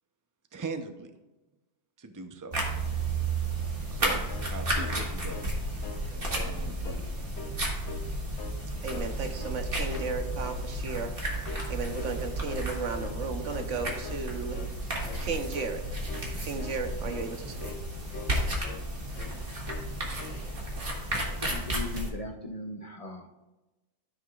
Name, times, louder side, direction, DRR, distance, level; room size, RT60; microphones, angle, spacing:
voice 1, 0.5-1.1 2.0-2.6 3.9-4.2 4.5-5.5 6.1-7.1, right 4 dB, 25° right, 6 dB, 0.5 m, -39 dB
sound 1, 2.5-22.1, right 1 dB, 50° right, 1.9 m, -33 dB
sound 2, 4.3-5.6 5.8-6.1 6.3-7.0 7.3-8.1 8.4-9.1 9.4-9.6 9.9-10.7 10.9-11.2 11.4-11.7 12.0-12.7 13.0-13.2 13.5-13.7 14.0-14.3 14.5-14.8 15.0-15.3 15.6-15.8 16.1-16.3 16.6-16.8 17.1-17.3 17.6-17.9 18.1-18.9 19.1-19.4 19.6-19.9 20.2-20.4, left 4 dB, 75° left, 1.1 m, -44 dB
voice 2, 8.8-11.1 11.7-14.6 15.2-15.8 16.4-17.8, right 4 dB, 85° right, 6 dB, 1.2 m, -34 dB
voice 3, 21.4-23.3, left 2 dB, 35° left, 2 dB, 0.6 m, -38 dB
14.0 x 5.8 x 2.4 m, 1.1 s
omnidirectional pair, 1.2 m